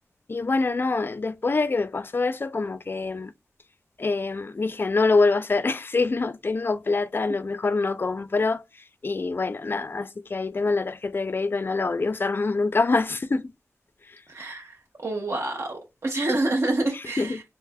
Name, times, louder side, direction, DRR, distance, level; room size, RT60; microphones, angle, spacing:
voice 1, 0.3-3.3 4.0-8.6 9.0-13.5 14.1-14.2 17.2-17.4, left 3 dB, 45° left, 0.4 m, -25 dB
voice 2, 14.3-17.4, right 2 dB, 65° right, 1.0 m, -28 dB
3.3 x 3.0 x 2.2 m
wide cardioid pair, 65°, 5 cm